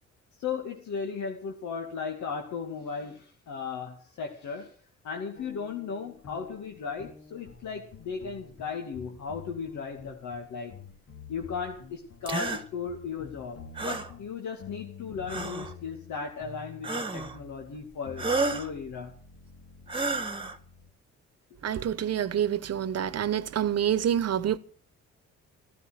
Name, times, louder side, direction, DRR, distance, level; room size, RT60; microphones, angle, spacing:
voice 1, 0.4-4.7 5.0-10.7 11.3-19.1, left 6 dB, 70° left, 2.5 m, -36 dB
sound 1, 5.3-20.9, left 5 dB, 55° left, 3.6 m, -49 dB
sound 2, 12.3-12.6 13.8-14.1 15.3-15.7 16.8-17.4 18.2-18.7 19.9-20.6, right 3 dB, 15° right, 1.7 m, -30 dB
voice 2, 21.6-24.6, right 10 dB, 55° right, 1.2 m, -27 dB
15.5 x 12.5 x 6.6 m
cardioid pair, 90°, 30 cm